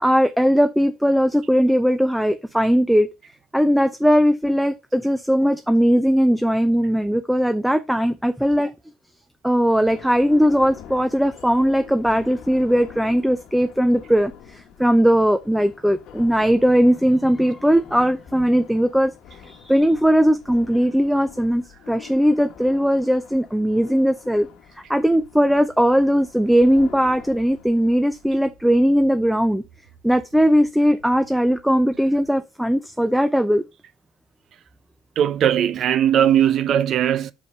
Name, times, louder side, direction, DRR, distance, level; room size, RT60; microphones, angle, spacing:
voice 1, 0.0-3.1 3.5-8.7 9.4-19.1 19.4-24.5 24.9-29.6 30.0-33.6, equal, 5° right, 0.6 m, -19 dB
sound 1, 9.8-28.3, left 9 dB, 75° left, 1.2 m, -45 dB
sound 2, 24.9-32.3, right 4 dB, 75° right, 3.1 m, -54 dB
voice 2, 35.2-37.3, right 10 dB, 60° right, 0.6 m, -19 dB
5.0 x 4.9 x 5.4 m
cardioid pair, 100°, 0 cm